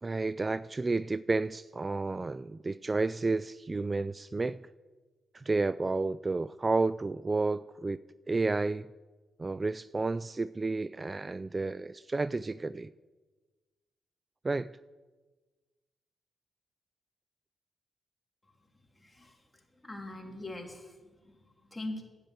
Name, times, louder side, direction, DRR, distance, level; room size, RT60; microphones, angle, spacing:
voice 1, 0.0-4.6 5.3-8.9 9.4-12.9 14.4-14.7, right 3 dB, 35° right, 0.3 m, -31 dB
voice 2, 19.0-19.4 19.8-22.0, left 2 dB, 15° left, 3.2 m, -42 dB
10.5 x 8.2 x 9.1 m
hypercardioid pair, 40°, 0 cm